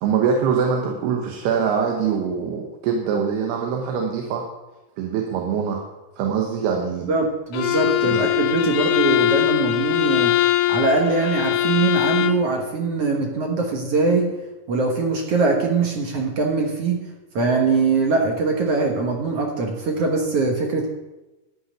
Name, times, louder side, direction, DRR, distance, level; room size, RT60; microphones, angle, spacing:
voice 1, 0.0-4.4 5.0-5.8 6.2-7.1, right 6 dB, 85° right, 1 dB, 3.1 m, -23 dB
voice 2, 7.1-10.4 10.7-14.3 14.7-17.0 17.3-20.9, right 4 dB, 60° right, 1 dB, 1.7 m, -22 dB
Bowed string instrument, 7.5-12.5, left 14 dB, 75° left, 2.2 m, -21 dB
12.0 x 5.7 x 9.0 m, 1.1 s
omnidirectional pair, 4.5 m